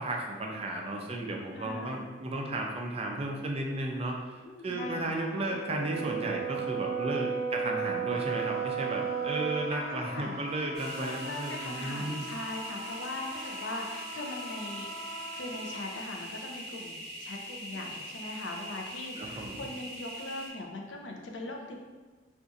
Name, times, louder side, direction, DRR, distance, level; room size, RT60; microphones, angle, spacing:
voice 1, 0.0-4.2 4.6-12.3 19.2-19.7, right 2 dB, 35° right, 0 dB, 0.4 m, -34 dB
voice 2, 1.5-2.2 4.4-5.2 9.7-10.4 11.0-21.8, left 2 dB, 75° left, 1 dB, 0.5 m, -40 dB
Brass instrument, 5.4-9.7, right 7 dB, 20° left, 0.9 m, -33 dB
Wind instrument woodwind instrument, 8.1-15.9, equal, 85° right, 0.6 m, -43 dB
sound 1, 10.7-20.5, equal, 55° right, 0.9 m, -42 dB
2.4 x 2.4 x 3.9 m, 1.3 s
head